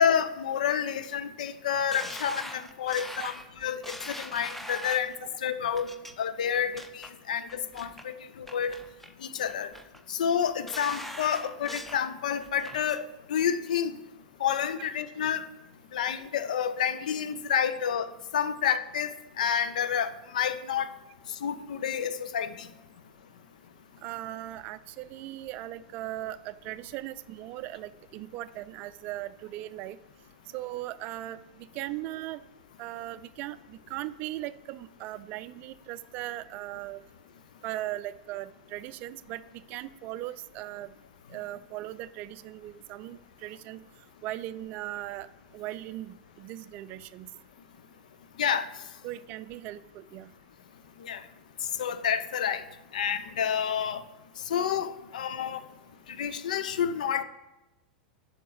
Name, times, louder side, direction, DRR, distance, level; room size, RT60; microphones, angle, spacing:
voice 1, 0.0-3.3 3.6-5.1 5.4-8.8 9.3-9.7 10.1-14.0 14.4-15.4 15.9-18.1 18.3-20.9 21.4-22.7 48.4-48.7 51.0-51.2 51.8-52.6 52.9-54.0 54.5-55.6 56.2-57.2, left 8 dB, 65° left, 12 dB, 0.6 m, -29 dB
sound 1, 1.9-5.2 5.8-6.1 6.5-7.1 7.5-8.0 8.5-9.1 9.5-10.0 10.4-12.0 12.4-13.0 13.4-13.5, equal, 5° left, 0.7 m, -42 dB
voice 2, 24.0-30.0 30.5-32.4 32.8-37.0 37.6-40.9 41.3-43.8 44.2-45.3 45.5-47.3 49.0-50.3, right 15 dB, 40° right, 16 dB, 0.4 m, -38 dB
7.6 x 5.8 x 6.9 m, 0.98 s
figure-of-eight pair, 90°, 4 cm